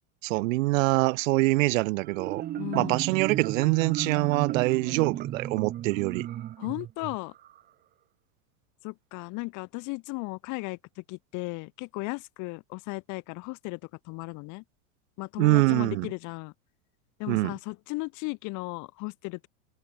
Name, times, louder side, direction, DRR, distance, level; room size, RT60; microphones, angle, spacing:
voice 1, 0.2-2.4 2.7-6.3 15.4-16.1 17.3-17.5, right 22 dB, 60° right, 1.3 m, -24 dB
Marimba xylophone, 2.0-7.6, right 12 dB, 20° right, 0.9 m, -34 dB
voice 2, 2.6-3.1 6.6-7.3 8.8-13.8 14.1-14.6 15.2-16.5 17.2-19.5, left 26 dB, 40° left, 2.1 m, -36 dB
supercardioid pair, 155°, 45 cm